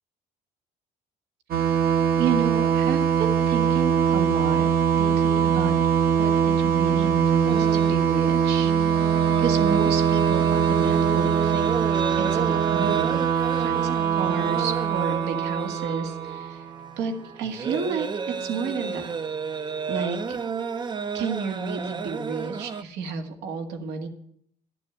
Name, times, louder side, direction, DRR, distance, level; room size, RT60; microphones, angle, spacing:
sound 1, 1.5-16.9, right 7 dB, 60° right, 1.5 m, -22 dB
voice 1, 2.2-5.7 6.2-9.1 9.4-11.7 12.2-13.2 13.5-16.7 17.0-19.1 19.9-20.4 21.1-24.1, right 5 dB, 85° right, 5 dB, 1.9 m, -31 dB
sound 2, 7.5-22.8, right 6 dB, 25° right, 0.6 m, -31 dB
12.5 x 6.9 x 9.4 m, 0.68 s
cardioid pair, 110°, 17 cm